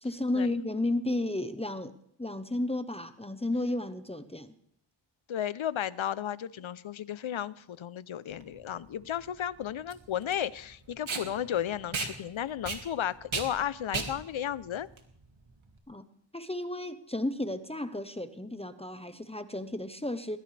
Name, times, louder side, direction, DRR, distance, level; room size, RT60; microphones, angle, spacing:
voice 1, 0.0-4.5 15.9-16.1 16.3-20.4, left 1 dB, 15° left, 10 dB, 0.9 m, -33 dB
voice 2, 5.3-14.9, left 10 dB, 85° left, 18 dB, 0.7 m, -34 dB
Packing tape duct tape, 8.3-15.8, right 4 dB, 85° right, 2.3 m, -37 dB
21.0 x 20.0 x 3.4 m, 0.70 s
wide cardioid pair, 90°, 46 cm